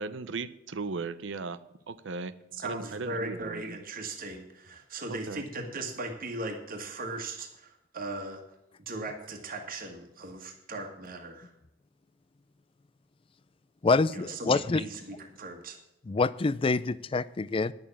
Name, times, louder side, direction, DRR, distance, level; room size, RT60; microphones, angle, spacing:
voice 1, 0.0-1.6 1.9-2.3 2.6-3.8 5.1-5.4, right 4 dB, 70° right, 14 dB, 0.6 m, -37 dB
voice 2, 2.5-8.4 8.8-11.5 14.1-15.8, right 2 dB, 50° right, 3 dB, 1.7 m, -38 dB
voice 3, 13.8-14.8 16.1-17.7, left 3 dB, 30° left, 18 dB, 0.4 m, -26 dB
10.5 x 6.9 x 7.2 m, 0.87 s
head